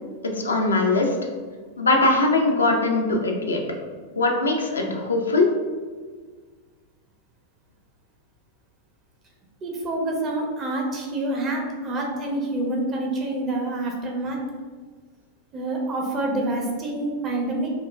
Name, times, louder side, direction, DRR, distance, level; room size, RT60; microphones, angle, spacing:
voice 1, 0.2-1.1 1.8-3.6 4.2-5.5, left 2 dB, 75° left, 1 dB, 0.4 m, -21 dB
voice 2, 9.6-14.4 15.5-17.7, right 2 dB, 30° right, 0 dB, 0.7 m, -27 dB
4.6 x 2.1 x 2.2 m, 1.5 s
figure-of-eight pair, 90°, 0 cm